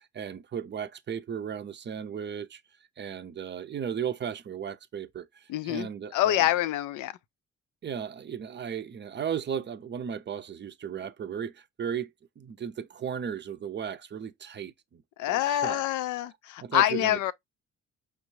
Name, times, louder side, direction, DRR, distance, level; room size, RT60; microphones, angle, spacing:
voice 1, 0.0-2.6 3.0-6.4 7.8-12.1 12.4-15.0 15.3-15.8 16.6-17.3, right 8 dB, 35° right, 0.5 m, -35 dB
voice 2, 5.5-7.1 15.2-17.3, left 14 dB, 85° left, 0.5 m, -26 dB
5.1 x 2.3 x 3.0 m
cardioid pair, 90°, 30 cm